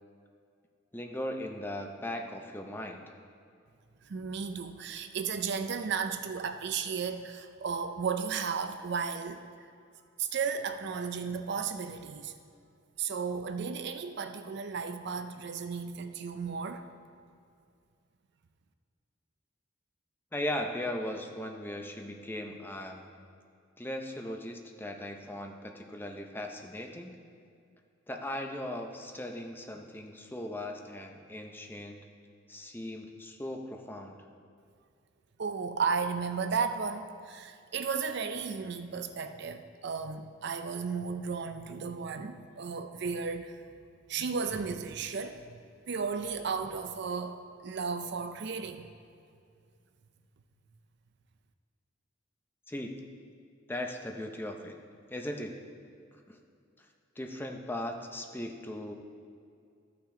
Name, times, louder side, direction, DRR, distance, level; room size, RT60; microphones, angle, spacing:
voice 1, 0.9-3.0 20.3-23.1 23.8-27.1 28.1-32.0 32.5-34.2 52.7-53.0 53.7-54.8 55.1-55.6 56.1-56.4 56.8-56.9 57.2-58.9, left 1 dB, 10° left, 3 dB, 0.6 m, -38 dB
voice 2, 4.0-9.4 10.2-12.3 13.0-16.9 35.4-43.6 43.9-45.4 45.9-48.9, right 5 dB, 60° right, 8 dB, 0.5 m, -34 dB
13.0 x 5.8 x 3.7 m, 2.4 s
head